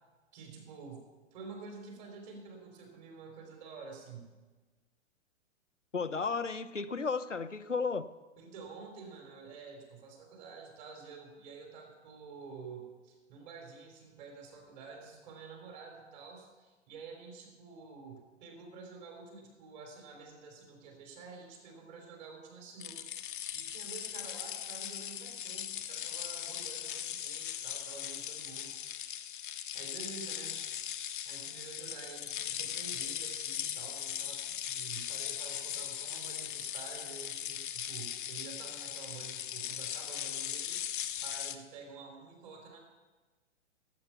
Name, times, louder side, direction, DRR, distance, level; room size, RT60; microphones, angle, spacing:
voice 1, 0.3-4.3 8.4-23.1 23.5-28.7 29.7-30.6 31.3-40.8 41.2-42.8, right 5 dB, 35° right, 3.6 m, -49 dB
voice 2, 5.9-8.1, left 4 dB, 90° left, 0.7 m, -33 dB
sound 1, 22.8-41.5, left 10 dB, 45° left, 1.0 m, -39 dB
18.0 x 8.5 x 5.8 m
figure-of-eight pair, 115°, 36 cm